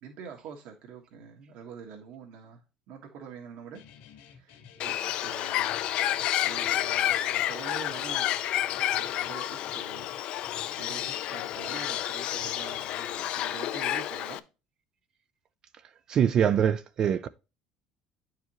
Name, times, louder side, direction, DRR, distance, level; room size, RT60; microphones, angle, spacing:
voice 1, 0.0-3.8 4.3-5.7 6.4-8.4 9.0-10.2 10.7-14.4, right 6 dB, 60° right, 1.5 m, -45 dB
Guitar, 3.7-13.5, left 8 dB, 80° left, 1.8 m, -53 dB
Bird, 4.8-14.4, left 12 dB, 50° left, 0.4 m, -30 dB
voice 2, 16.1-17.3, right 8 dB, 35° right, 0.3 m, -24 dB
9.7 x 4.8 x 3.0 m
cardioid pair, 170°, 2 cm